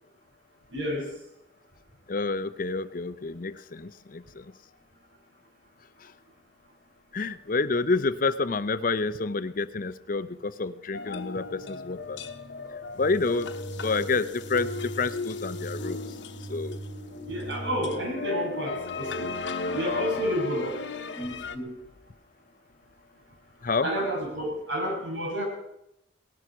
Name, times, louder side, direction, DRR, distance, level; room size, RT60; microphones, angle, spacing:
voice 1, 0.7-1.1 17.3-19.3 19.7-20.7 21.2-21.7 23.8-25.4, equal, 85° right, -1 dB, 6.0 m, -30 dB
voice 2, 2.1-4.4 7.1-12.2 13.0-13.5 13.8-14.7 15.0-16.0 16.5-16.8 23.6-23.9, left 3 dB, 45° left, 14 dB, 0.6 m, -28 dB
sound 1, 10.9-21.6, left 4 dB, 75° left, 1.1 m, -36 dB
sound 2, 11.4-18.1, right 2 dB, 50° right, 1.8 m, -41 dB
18.0 x 11.5 x 6.1 m, 0.82 s
head